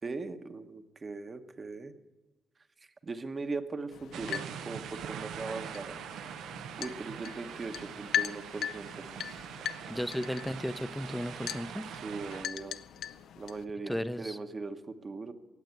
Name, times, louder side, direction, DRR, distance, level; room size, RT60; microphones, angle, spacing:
voice 1, 0.0-1.9 2.8-6.0 6.8-9.1 11.9-12.8 13.4-15.3, right 3 dB, 30° right, 8 dB, 1.0 m, -39 dB
sound 1, 3.9-13.6, left 9 dB, 80° left, 0.5 m, -40 dB
sound 2, 4.1-12.5, right 9 dB, 85° right, 0.6 m, -43 dB
voice 2, 9.9-11.8 13.9-14.4, equal, 5° left, 13 dB, 0.6 m, -34 dB
18.0 x 7.9 x 8.0 m, 1.2 s
cardioid pair, 120°, 0 cm